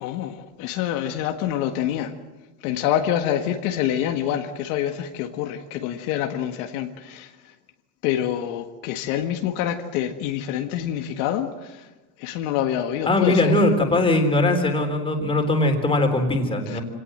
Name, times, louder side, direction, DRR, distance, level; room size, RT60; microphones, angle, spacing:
voice 1, 0.0-2.1 2.6-7.3 8.0-11.7 12.2-13.5 16.7-16.8, left 10 dB, 65° left, 5 dB, 1.8 m, -26 dB
voice 2, 13.1-16.8, left 2 dB, 10° left, 3 dB, 3.6 m, -20 dB
26.0 x 18.0 x 7.9 m, 1.1 s
supercardioid pair, 140°, 48 cm